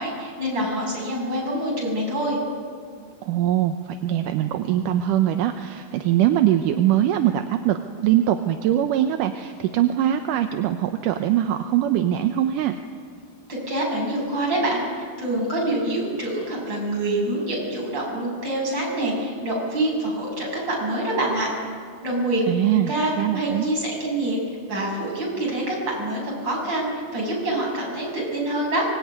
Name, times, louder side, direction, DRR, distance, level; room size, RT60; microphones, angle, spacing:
voice 1, 0.0-2.4 13.5-14.8 15.2-21.5 22.0-24.4 24.7-28.9, right 1 dB, 30° right, -2 dB, 7.8 m, -26 dB
voice 2, 3.3-12.7 22.5-23.7, right 11 dB, 70° right, 7 dB, 2.2 m, -22 dB
24.5 x 22.5 x 9.5 m, 2.1 s
omnidirectional pair, 4.4 m